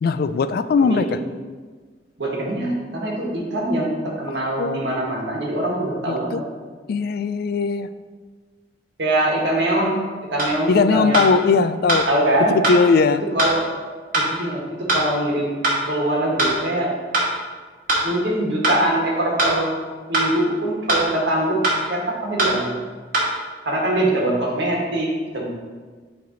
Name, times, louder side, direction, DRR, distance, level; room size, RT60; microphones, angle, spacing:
voice 1, 0.0-1.2 4.6-4.8 6.1-6.4 6.9-7.9 10.7-12.1 12.5-13.2, left 4 dB, 55° left, 12 dB, 0.3 m, -19 dB
voice 2, 0.8-1.2 2.2-6.4 9.0-10.0 10.3-11.4 12.1-12.5 13.3-13.7 14.1-15.6 15.9-16.9 18.0-19.8 20.1-21.6 21.9-22.7 23.6-25.5, right 1 dB, 75° right, -2 dB, 1.5 m, -23 dB
sound 1, 10.4-10.5 11.1-11.3 11.9-12.0 12.6-12.8 13.4-13.5 14.1-14.3 14.9-15.0 15.6-15.8 16.4-16.5 17.1-17.3 17.9-18.0 18.6-18.8 19.4-19.5 20.1-20.3 20.9-21.1 21.6-21.8 22.4-22.6 23.1-23.3, right 2 dB, 50° right, 1.6 m, -20 dB
9.1 x 3.4 x 3.9 m, 1.5 s
head